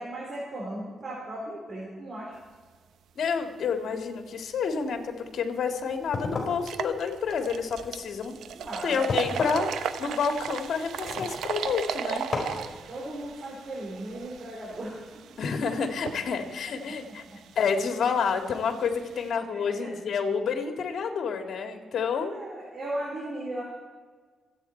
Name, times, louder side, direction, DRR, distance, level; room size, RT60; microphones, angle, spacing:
voice 1, 0.0-2.3 8.5-9.0 12.5-15.0 19.5-19.9 22.1-23.6, right 1 dB, 45° right, -5 dB, 4.2 m, -37 dB
voice 2, 3.2-8.4 8.8-12.3 15.4-17.2 17.6-22.3, left 6 dB, 70° left, 5 dB, 2.2 m, -29 dB
sound 1, 5.3-5.4 5.8-5.9 6.5-19.3, right 8 dB, 80° right, 0.8 m, -37 dB
sound 2, 5.9-11.8 12.3-12.7, left 3 dB, 45° left, 4.6 m, -36 dB
27.0 x 9.2 x 4.6 m, 1.5 s
cardioid pair, 80°, 0 cm